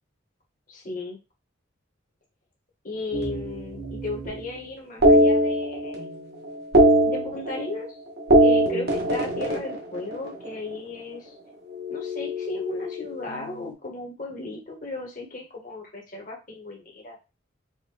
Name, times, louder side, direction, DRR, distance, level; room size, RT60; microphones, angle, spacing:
voice 1, 0.7-1.2 2.8-6.1 7.0-8.0 8.4-11.3 11.9-17.2, left 2 dB, 45° left, -1 dB, 1.6 m, -35 dB
sound 1, 3.1-4.4 5.0-6.2 6.5-7.9 8.2-10.5 11.7-13.5, right 1 dB, 55° right, 1.4 m, -22 dB
5.4 x 2.6 x 3.5 m, 0.28 s
head